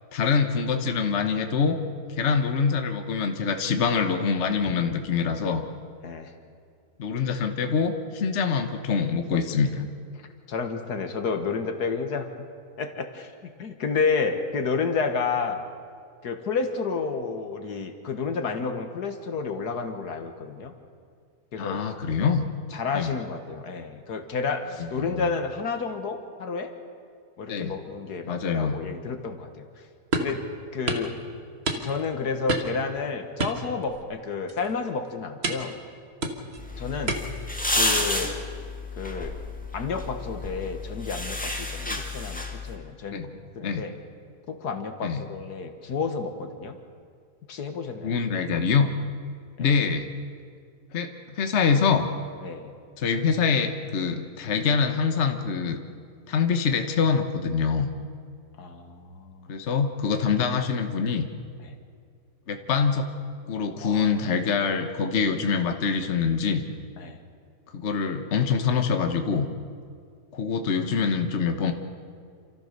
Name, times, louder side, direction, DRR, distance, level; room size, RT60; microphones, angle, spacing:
voice 1, 0.1-1.8 2.1-5.6 7.0-9.8 21.6-22.5 22.9-23.1 25.0-25.3 27.5-27.7 28.2-28.8 41.9-42.0 43.1-43.3 43.6-43.8 45.0-45.2 48.0-48.9 49.6-50.1 50.9-51.1 51.4-52.1 53.0-55.8 56.3-57.9 59.5-61.3 62.5-63.1 63.5-66.6 67.7-69.5 70.3-71.7, left 5 dB, 45° left, 6 dB, 1.3 m, -25 dB
voice 2, 10.2-12.3 12.8-15.6 16.2-20.7 21.5-21.9 22.7-26.7 27.4-29.8 30.2-31.2 31.7-35.8 36.8-37.2 37.7-38.4 39.0-39.4 39.7-41.9 42.1-43.3 43.6-44.0 44.5-46.8 47.5-48.2 49.6-49.7 52.4-52.7 58.6-59.5 61.6-61.8 63.8-64.2 67.0-67.2, left 5 dB, 75° left, 7 dB, 1.9 m, -30 dB
sound 1, 30.1-30.4 30.9-31.1 31.7-32.1 32.5-32.8 33.4-34.2 34.5-34.7 35.4-35.8 36.2-36.6 37.1-37.5 37.9-38.3, right 2 dB, 40° right, 1.7 m, -29 dB
sound 2, 36.6-42.8, left 2 dB, 5° left, 1.7 m, -30 dB
28.5 x 14.0 x 6.7 m, 2.2 s
omnidirectional pair, 1.8 m